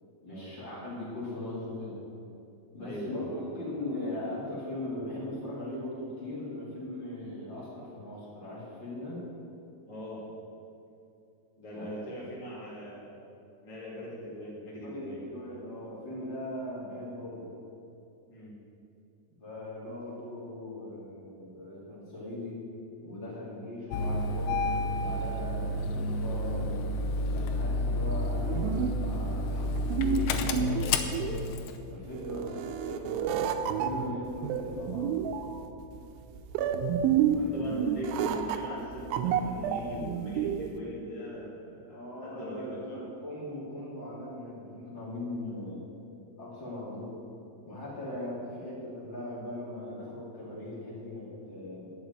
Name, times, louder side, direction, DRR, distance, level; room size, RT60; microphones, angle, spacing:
voice 1, 0.2-2.0 2.7-9.2 11.7-11.9 14.8-17.4 19.4-22.6 23.0-24.6 25.0-26.9 27.2-31.5 31.9-33.4 33.7-35.2 37.3-37.5 41.9-45.8 46.4-47.2 47.6-51.9, left 1 dB, 30° left, -6 dB, 3.1 m, -39 dB
voice 2, 2.8-3.3 9.8-10.2 11.6-13.2 13.6-15.2 18.3-18.5 32.3-32.5 37.3-43.0 45.4-45.6, equal, 15° left, -7 dB, 1.3 m, -41 dB
Engine starting, 23.9-31.8, left 2 dB, 80° left, 2.4 m, -30 dB
sound 1, 28.2-40.8, right 8 dB, 90° right, 3.1 m, -30 dB
11.0 x 7.5 x 9.1 m, 2.7 s
omnidirectional pair, 5.3 m